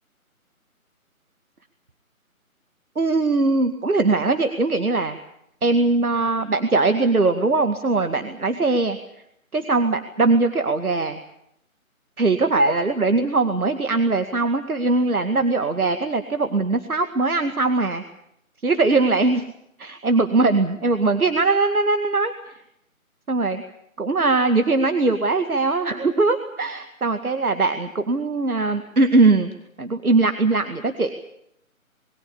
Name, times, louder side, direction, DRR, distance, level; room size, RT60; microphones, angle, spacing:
voice 1, 3.0-5.2 5.6-9.0 9.5-11.2 12.2-18.0 18.6-19.5 19.8-22.6 23.3-23.6 24.0-29.5 29.8-31.1, right 3 dB, 85° right, 8 dB, 2.2 m, -21 dB
26.5 x 22.0 x 7.1 m, 0.76 s
figure-of-eight pair, 160°, 43 cm